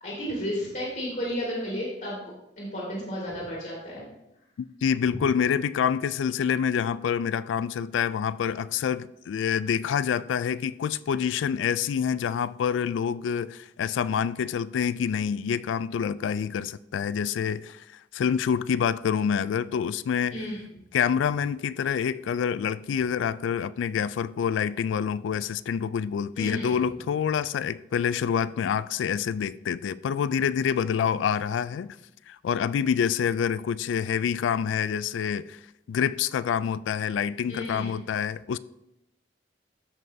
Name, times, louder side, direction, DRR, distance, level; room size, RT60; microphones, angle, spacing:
voice 1, 0.0-2.3 2.6-4.1 20.3-20.6 26.3-26.7 37.5-37.9, equal, 45° left, 2.2 m, -32 dB
voice 2, 4.6-20.4 20.9-32.0 32.3-35.6 35.9-38.6, left 7 dB, 90° left, 0.3 m, -27 dB
13.5 x 5.3 x 2.7 m
head